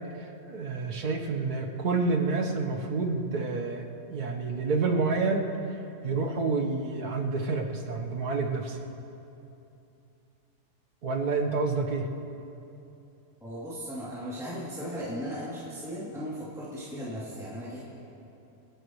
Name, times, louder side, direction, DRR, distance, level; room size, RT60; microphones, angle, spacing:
voice 1, 0.5-5.5 6.0-8.8 11.0-12.1, right 4 dB, 65° right, 2 dB, 1.8 m, -28 dB
voice 2, 13.4-17.8, equal, ahead, -10 dB, 2.9 m, -37 dB
28.5 x 12.0 x 3.2 m, 2.8 s
omnidirectional pair, 1.8 m